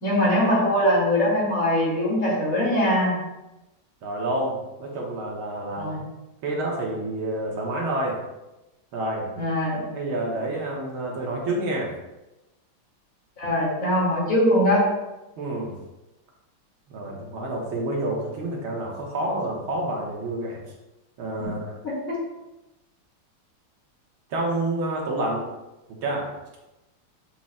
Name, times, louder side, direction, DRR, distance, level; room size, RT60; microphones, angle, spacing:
voice 1, 0.0-3.1 5.8-6.0 9.4-9.8 13.4-14.9 21.4-21.5 21.8-21.9, equal, 40° left, -6 dB, 2.5 m, -22 dB
voice 2, 4.0-5.9 6.4-8.2 8.9-9.3 9.9-11.9 15.4-15.7 16.9-20.6 21.2-21.8 24.3-25.4 26.0-26.3, right 1 dB, 75° right, -2 dB, 2.1 m, -28 dB
7.2 x 7.0 x 2.3 m, 0.99 s
omnidirectional pair, 2.4 m